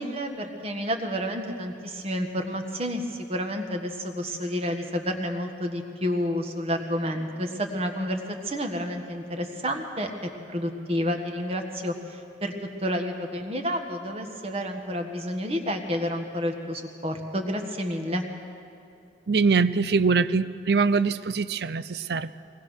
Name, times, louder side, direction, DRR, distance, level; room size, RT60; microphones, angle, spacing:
voice 1, 0.0-10.1 10.5-12.5 12.8-18.3, equal, 35° right, 4 dB, 1.5 m, -30 dB
voice 2, 19.3-22.3, right 4 dB, 60° right, 16 dB, 0.5 m, -23 dB
22.5 x 19.0 x 6.4 m, 2.8 s
head